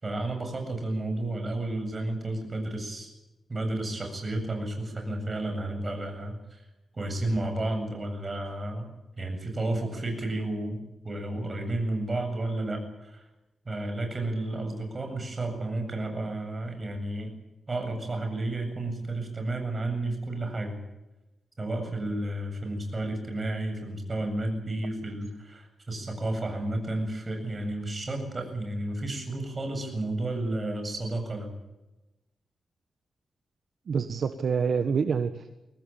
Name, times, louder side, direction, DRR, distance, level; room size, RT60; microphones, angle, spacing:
voice 1, 0.0-3.1 3.5-6.6 6.9-8.9 9.2-10.8 11.0-13.2 13.6-17.3 17.7-20.8 21.6-31.5, right 2 dB, 30° right, 5 dB, 7.8 m, -32 dB
voice 2, 33.9-35.6, right 6 dB, 65° right, 8 dB, 1.5 m, -27 dB
24.0 x 18.5 x 9.0 m, 1.0 s
wide cardioid pair, 115°, 0 cm